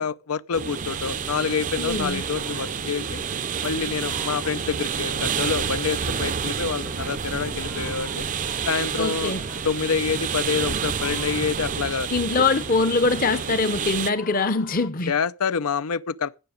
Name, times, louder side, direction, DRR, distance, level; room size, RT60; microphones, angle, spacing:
voice 1, 0.0-3.2 3.6-8.3 8.7-9.3 9.6-12.1 15.1-16.4, left 6 dB, 80° left, 0.6 m, -27 dB
sound 1, 0.5-14.1, right 7 dB, 35° right, 0.5 m, -29 dB
voice 2, 1.8-2.2 9.0-9.4 12.1-15.1, left 3 dB, 40° left, 0.8 m, -23 dB
sound 2, 2.3-14.9, left 5 dB, 65° left, 1.0 m, -46 dB
17.0 x 6.9 x 5.0 m
head